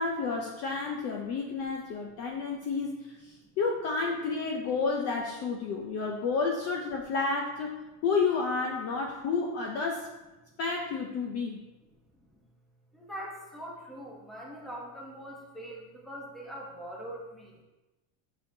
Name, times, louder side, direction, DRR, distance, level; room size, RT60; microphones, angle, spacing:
voice 1, 0.0-7.8 8.0-10.1 10.6-11.6, left 4 dB, 35° left, 1 dB, 0.5 m, -30 dB
voice 2, 12.9-17.6, equal, ahead, -3 dB, 0.9 m, -42 dB
9.1 x 6.3 x 2.7 m, 1.1 s
cardioid pair, 175°, 45 cm